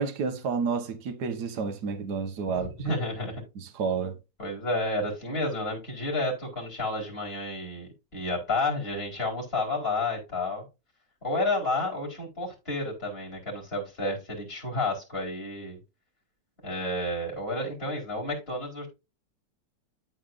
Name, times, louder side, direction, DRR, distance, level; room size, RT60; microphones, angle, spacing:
voice 1, 0.0-2.8 3.6-4.2, right 5 dB, 65° right, 1.8 m, -30 dB
voice 2, 2.5-3.4 4.4-10.6 11.2-15.8 16.6-18.9, left 2 dB, 30° left, 4.8 m, -31 dB
13.5 x 4.5 x 2.6 m
omnidirectional pair, 1.9 m